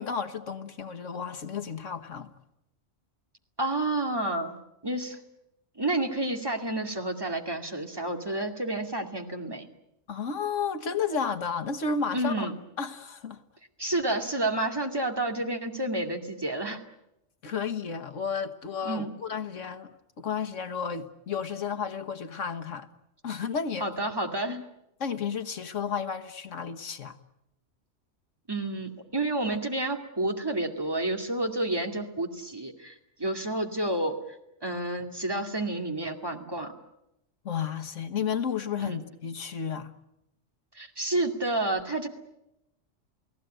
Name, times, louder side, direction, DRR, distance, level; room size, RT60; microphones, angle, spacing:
voice 1, 0.0-2.3 10.1-12.5 12.8-13.4 17.4-22.9 23.2-23.9 24.5-24.6 25.0-27.2 37.4-39.9, left 6 dB, 85° left, 1.8 m, -32 dB
voice 2, 3.6-4.6 4.8-5.2 5.8-9.7 12.1-12.5 13.8-16.8 18.8-19.1 23.8-24.6 28.5-34.2 34.6-36.7 38.8-39.0 40.8-42.1, right 2 dB, 20° right, 2.4 m, -30 dB
29.0 x 17.5 x 9.2 m
omnidirectional pair, 1.3 m